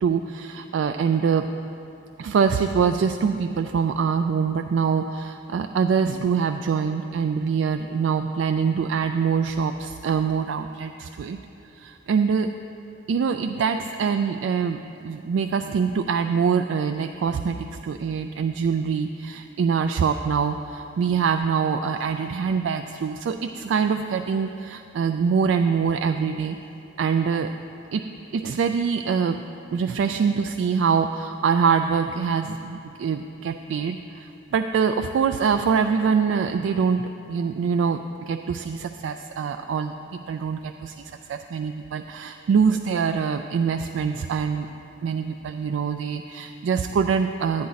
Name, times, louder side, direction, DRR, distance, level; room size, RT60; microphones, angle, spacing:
voice 1, 0.0-1.5 2.2-11.4 11.8-12.5 13.1-26.6 27.0-27.5 27.9-28.0 28.3-29.4 29.7-44.7 45.0-47.7, right 6 dB, 75° right, 6 dB, 0.3 m, -24 dB
10.5 x 9.5 x 4.0 m, 2.9 s
head